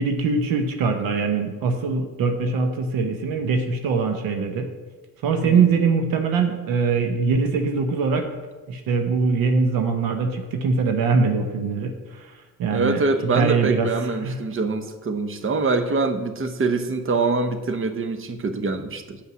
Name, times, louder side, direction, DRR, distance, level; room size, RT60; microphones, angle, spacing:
voice 1, 0.0-4.7 5.2-8.2 8.7-12.3 12.6-13.0 13.4-13.9 14.2-14.4, right 4 dB, 80° right, 6 dB, 0.9 m, -22 dB
voice 2, 12.7-19.2, right 3 dB, 35° right, 9 dB, 1.0 m, -24 dB
8.5 x 5.4 x 6.2 m, 1.3 s
supercardioid pair, 50°, 34 cm